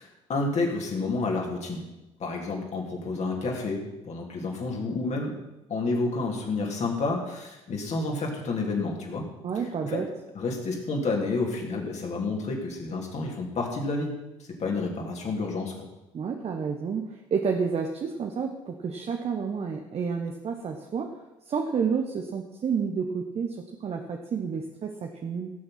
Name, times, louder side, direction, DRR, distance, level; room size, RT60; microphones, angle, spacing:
voice 1, 0.0-1.8 2.2-5.3 5.7-9.2 9.8-10.0 10.3-14.1 14.6-15.8, left 3 dB, 45° left, 0 dB, 3.4 m, -30 dB
voice 2, 9.4-10.1 16.1-21.2 21.4-25.5, right 6 dB, 40° right, 4 dB, 1.2 m, -30 dB
17.0 x 7.0 x 6.0 m, 0.97 s
figure-of-eight pair, 55°, 16 cm